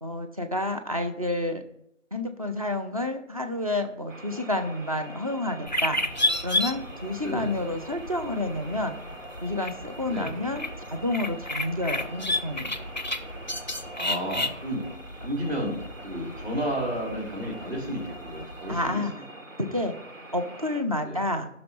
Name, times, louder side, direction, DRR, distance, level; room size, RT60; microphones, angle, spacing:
voice 1, 0.0-1.6 2.1-6.0 6.4-9.0 9.4-12.7 18.7-19.1 19.6-20.0 20.3-21.5, left 1 dB, 30° right, 7 dB, 0.7 m, -29 dB
sound 1, 4.1-20.8, right 1 dB, 75° right, 1.5 m, -44 dB
sound 2, 5.7-19.0, left 1 dB, 35° left, 0.5 m, -33 dB
voice 2, 7.2-7.5 10.0-10.3 13.9-14.8 15.2-19.0 21.0-21.2, equal, 55° right, -2 dB, 4.1 m, -32 dB
14.0 x 6.1 x 3.2 m, 0.74 s
figure-of-eight pair, 160°, 39 cm